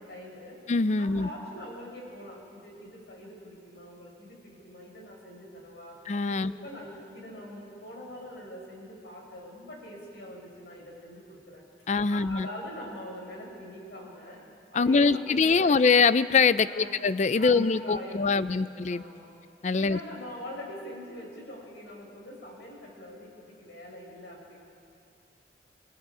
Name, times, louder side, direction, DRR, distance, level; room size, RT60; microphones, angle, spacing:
voice 1, 0.0-0.6 1.0-6.0 6.3-11.6 12.1-14.4 14.7-15.8 16.6-17.0 17.3-19.3 19.7-24.6, left 1 dB, 70° left, -1 dB, 5.6 m, -43 dB
voice 2, 0.7-1.3 6.1-6.5 11.9-12.5 14.8-19.0 19.6-20.0, left 4 dB, 40° left, 15 dB, 0.4 m, -23 dB
28.0 x 20.5 x 5.0 m, 2.4 s
head